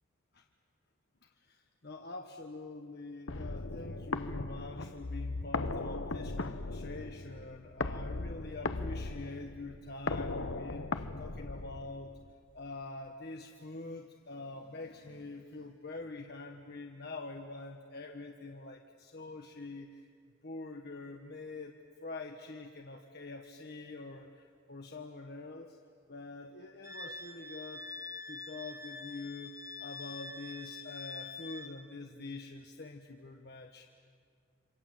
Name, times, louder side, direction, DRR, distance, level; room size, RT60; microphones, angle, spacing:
voice 1, 1.2-12.2 12.5-20.1 20.4-25.8 26.1-27.8 28.3-33.8, left 3 dB, 50° left, 3 dB, 1.2 m, -45 dB
sound 1, 3.3-12.2, left 3 dB, 70° left, 1.0 m, -38 dB
Wind instrument woodwind instrument, 26.8-31.7, left 3 dB, 15° right, 1.5 m, -45 dB
27.0 x 26.0 x 7.7 m, 2.1 s
head